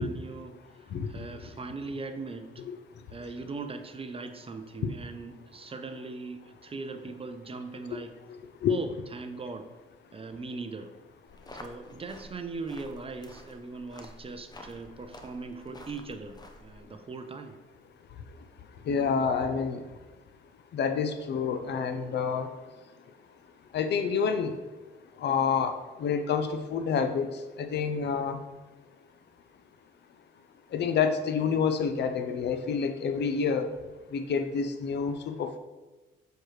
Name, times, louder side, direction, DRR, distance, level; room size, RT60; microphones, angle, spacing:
voice 1, 0.0-2.6 3.1-8.1 8.7-9.7 10.1-10.9 11.5-17.6, right 3 dB, 30° right, 8 dB, 0.5 m, -40 dB
voice 2, 0.9-1.2 2.7-2.8 4.8-4.9 8.6-8.8 18.9-19.8 20.7-22.5 23.7-24.5 25.2-27.3 27.6-28.4 30.7-33.7 34.1-35.6, left 6 dB, 60° left, 8 dB, 0.6 m, -28 dB
sound 1, 11.3-16.8, left 1 dB, 20° left, 0.7 m, -49 dB
6.5 x 4.5 x 3.2 m, 1.2 s
cardioid pair, 90°, 20 cm